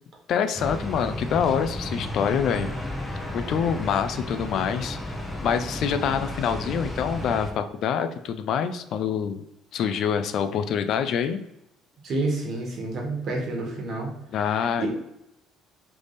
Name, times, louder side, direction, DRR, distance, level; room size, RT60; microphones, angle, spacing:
voice 1, 0.3-2.7 3.3-5.1 5.4-9.4 9.7-11.4 14.3-14.9, left 7 dB, 60° left, 9 dB, 0.4 m, -26 dB
sound 1, 0.5-7.5, left 1 dB, 10° left, 0.8 m, -33 dB
voice 2, 12.0-14.1 14.8-14.9, right 2 dB, 50° right, 0 dB, 1.4 m, -28 dB
3.4 x 3.3 x 4.0 m, 0.84 s
cardioid pair, 120°, 0 cm